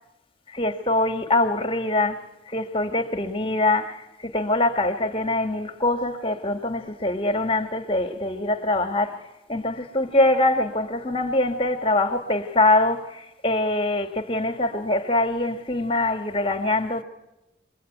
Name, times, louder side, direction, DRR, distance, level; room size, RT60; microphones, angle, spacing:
voice 1, 0.5-9.2 9.5-17.0, left 2 dB, 30° left, 1.4 m, -23 dB
27.5 x 22.5 x 9.2 m
head